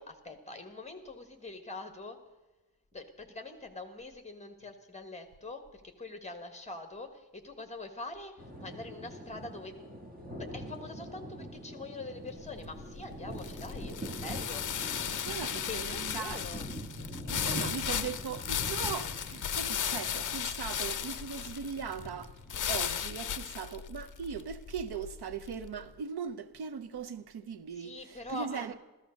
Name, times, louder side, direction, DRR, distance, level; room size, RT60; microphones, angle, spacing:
voice 1, 0.2-2.2 2.9-5.6 6.0-8.3 8.6-9.7 10.4-13.9 14.2-14.6 15.5-16.7 27.7-28.7, left 2 dB, 20° left, 1.4 m, -44 dB
sound 1, 8.4-23.4, equal, 20° right, 1.9 m, -44 dB
sound 2, 12.4-25.7, left 8 dB, 55° left, 0.6 m, -36 dB
voice 2, 15.1-16.4 17.3-22.3 22.7-28.8, right 6 dB, 90° right, 0.8 m, -39 dB
14.5 x 14.0 x 6.4 m
wide cardioid pair, 180°, 38 cm